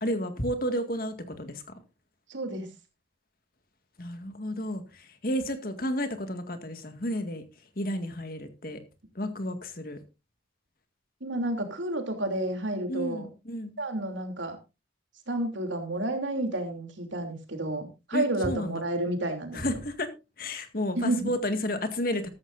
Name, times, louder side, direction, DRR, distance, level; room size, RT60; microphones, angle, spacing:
voice 1, 0.0-1.6 4.0-7.4 7.8-8.8 9.2-10.0 12.9-13.8 18.1-18.8 19.5-20.1 20.4-22.3, equal, 50° left, 2.0 m, -31 dB
voice 2, 2.3-2.7 11.2-13.3 13.8-14.6 15.3-19.6 20.9-21.3, right 1 dB, 80° right, 3.1 m, -30 dB
14.0 x 13.5 x 2.6 m
head